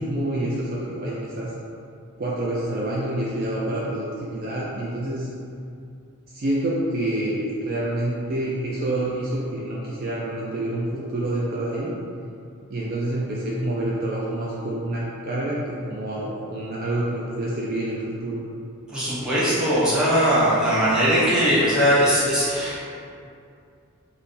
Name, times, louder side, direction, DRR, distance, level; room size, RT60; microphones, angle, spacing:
voice 1, 0.0-1.5 2.2-5.3 6.3-11.9 12.7-18.4, right 1 dB, 40° right, -5 dB, 0.4 m, -27 dB
voice 2, 18.9-22.8, equal, 5° right, -11 dB, 0.9 m, -20 dB
3.4 x 2.1 x 4.1 m, 2.5 s
head